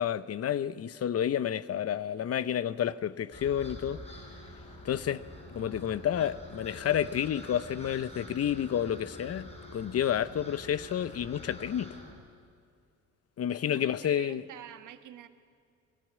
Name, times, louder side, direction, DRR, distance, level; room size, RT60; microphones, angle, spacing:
voice 1, 0.0-4.0 4.8-5.2 5.5-11.9 13.4-14.4, left 9 dB, 55° left, 0.8 m, -30 dB
sound 1, 3.3-12.1, equal, 20° left, 6.9 m, -46 dB
voice 2, 13.7-15.3, right 11 dB, 80° right, 1.4 m, -47 dB
22.0 x 17.5 x 9.7 m
cardioid pair, 90°, 30 cm